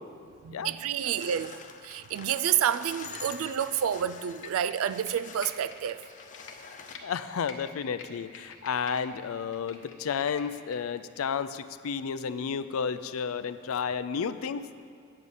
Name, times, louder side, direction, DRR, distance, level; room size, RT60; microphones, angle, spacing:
voice 1, 0.4-6.0, right 9 dB, 80° right, 0.3 m, -29 dB
sound 1, 1.0-7.0, left 6 dB, 35° left, 0.5 m, -46 dB
Computer keyboard, 4.3-7.0 7.4-9.0 9.4-10.8 11.2-11.3, left 5 dB, 60° left, 0.9 m, -48 dB
voice 2, 7.0-14.7, left 6 dB, 85° left, 0.4 m, -32 dB
8.8 x 8.0 x 5.5 m
head